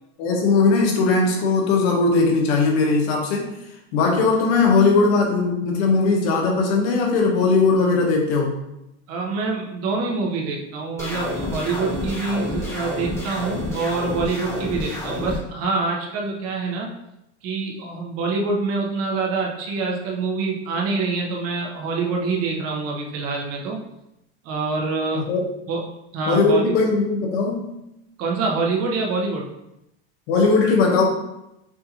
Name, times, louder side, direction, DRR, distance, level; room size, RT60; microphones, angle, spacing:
voice 1, 0.2-3.5 3.9-8.5 25.1-25.5 26.3-27.7 30.3-31.0, left 4 dB, 75° left, 0 dB, 1.3 m, -19 dB
voice 2, 9.1-16.9 17.4-23.8 24.4-25.3 25.7-26.6 28.2-29.5, right 4 dB, 50° right, -1 dB, 1.1 m, -26 dB
sound 1, 11.0-15.4, left 1 dB, 10° left, 1.4 m, -29 dB
6.4 x 2.7 x 2.9 m, 0.87 s
supercardioid pair, 130°, 31 cm